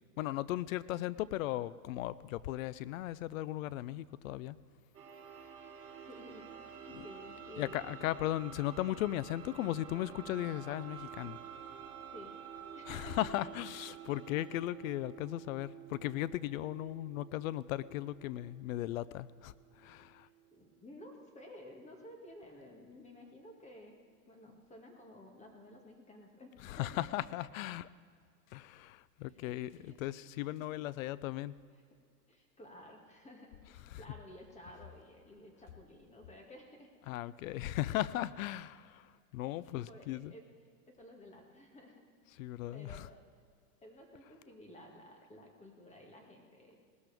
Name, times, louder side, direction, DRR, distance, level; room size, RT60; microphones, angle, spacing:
voice 1, 0.2-4.6 6.9-7.0 7.6-11.4 12.9-20.3 26.6-27.9 28.5-31.6 33.9-34.0 37.1-40.3 42.4-43.1, left 15 dB, 60° left, 18 dB, 0.5 m, -37 dB
sound 1, 4.9-20.6, right 8 dB, 30° right, 3.2 m, -50 dB
voice 2, 6.0-7.9 12.1-12.4 12.7-13.2 20.1-20.2 20.5-24.0 24.3-27.2 29.3-30.0 30.4-30.5 32.3-36.9 39.9-40.5 40.9-42.4 42.7-43.2 43.8-46.7, left 1 dB, 15° left, 1 dB, 2.0 m, -54 dB
18.5 x 13.0 x 3.5 m, 2.1 s
hypercardioid pair, 120°, 48 cm